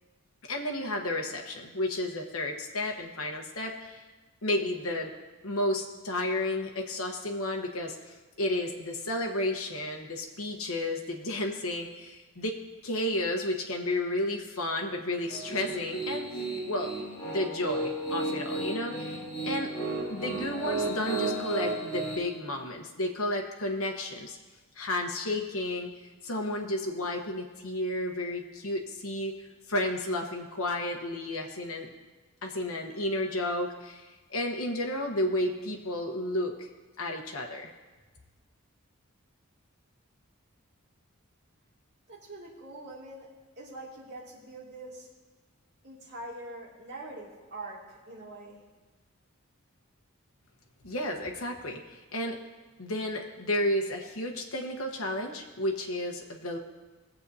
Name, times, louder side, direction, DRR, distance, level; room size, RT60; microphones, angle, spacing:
voice 1, 0.5-4.0 4.4-5.1 5.4-16.3 16.6-16.9 17.2-19.7 20.1-24.4 24.8-25.9 26.2-29.4 29.7-31.9 32.4-36.7 37.0-37.7 50.8-52.4 52.8-56.6, left 1 dB, 70° left, 2 dB, 1.2 m, -32 dB
Piano, 15.3-22.1, right 2 dB, 20° left, 3.2 m, -33 dB
voice 2, 42.1-43.3 43.6-45.1 45.8-48.6, right 2 dB, 50° right, -5 dB, 2.6 m, -44 dB
19.5 x 7.9 x 2.8 m, 1.2 s
head